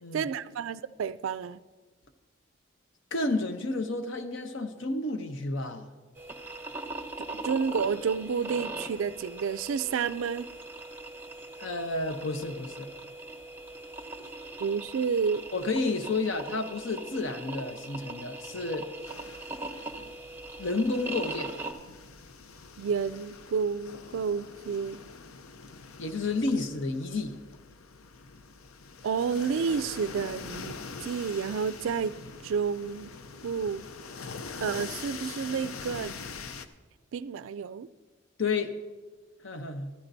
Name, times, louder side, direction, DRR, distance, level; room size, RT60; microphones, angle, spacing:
voice 1, 0.1-1.6 7.4-10.5 14.6-15.4 22.8-25.0 29.0-32.1 32.4-33.1 33.4-33.8 34.6-36.1 37.1-37.9, right 6 dB, 70° right, 0.3 m, -30 dB
voice 2, 3.1-5.9 11.6-12.9 15.5-18.9 20.0-20.1 20.6-21.6 26.0-27.4 38.4-38.8 39.4-39.9, left 3 dB, 60° left, 0.8 m, -31 dB
sound 1, 6.2-21.7, right 2 dB, 10° right, 0.7 m, -40 dB
sound 2, 19.0-36.7, left 5 dB, 90° left, 0.6 m, -44 dB
14.0 x 13.5 x 2.7 m
head